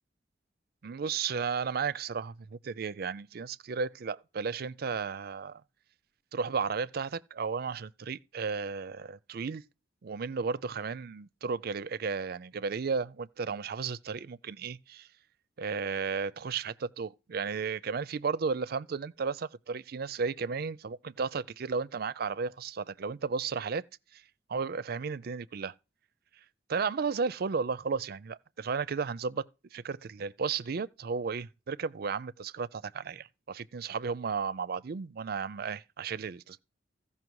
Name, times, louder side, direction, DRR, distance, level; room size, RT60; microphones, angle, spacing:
voice 1, 0.8-5.6 6.3-9.6 10.0-15.1 15.6-23.8 24.1-24.2 24.5-25.7 26.7-29.4 29.7-36.6, right 5 dB, 55° right, 0.5 m, -34 dB
15.0 x 5.6 x 4.7 m
head